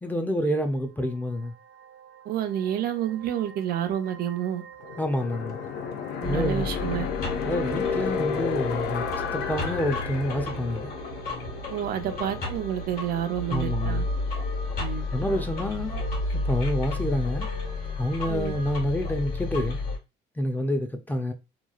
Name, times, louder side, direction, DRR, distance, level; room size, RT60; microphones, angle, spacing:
voice 1, 0.0-1.5 5.0-5.6 6.3-6.7 7.4-9.0 9.3-10.9 13.5-14.0 15.1-15.9 16.5-17.5 18.0-19.8 20.4-21.3, left 1 dB, 10° left, 0.5 m, -28 dB
sound 1, 0.6-18.7, right 5 dB, 90° right, 0.9 m, -49 dB
voice 2, 2.3-4.6 6.2-7.1 11.7-14.0 14.8-15.0 18.3-18.5, right 10 dB, 65° right, 0.5 m, -29 dB
sound 2, 4.8-15.5, left 6 dB, 75° left, 0.5 m, -33 dB
sound 3, 6.2-20.0, left 2 dB, 60° left, 1.4 m, -32 dB
3.0 x 2.3 x 2.3 m
cardioid pair, 110°, 17 cm